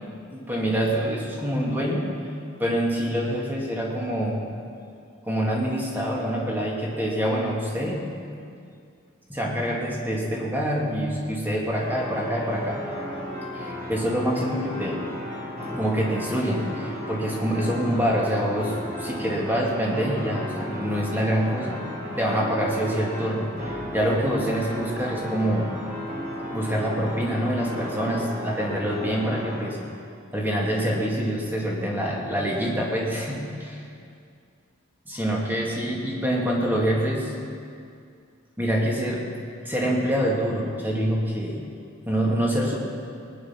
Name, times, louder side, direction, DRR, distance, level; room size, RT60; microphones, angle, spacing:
voice 1, 0.3-2.1 2.6-4.5 5.2-8.1 9.3-12.8 13.5-15.0 15.7-21.9 22.2-25.8 26.5-29.8 30.3-33.8 35.1-37.3 38.6-39.2 39.6-41.6 42.0-42.8, equal, 10° right, -3 dB, 2.3 m, -26 dB
sound 1, 11.8-29.6, left 1 dB, 35° right, 4.2 m, -34 dB
19.5 x 10.0 x 6.0 m, 2.4 s
head